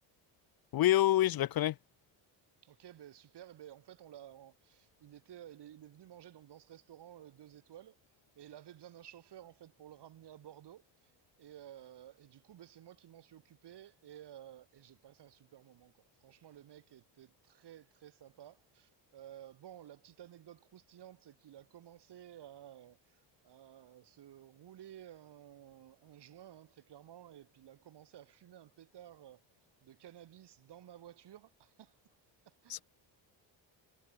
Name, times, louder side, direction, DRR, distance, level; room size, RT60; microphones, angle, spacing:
voice 1, 0.7-1.7 32.7-32.8, left 13 dB, 50° left, 0.6 m, -27 dB
voice 2, 2.6-8.0 8.3-11.1 11.4-29.4 29.8-32.2 32.4-32.8, right 11 dB, 60° right, 2.5 m, -54 dB
cardioid pair, 100°, 46 cm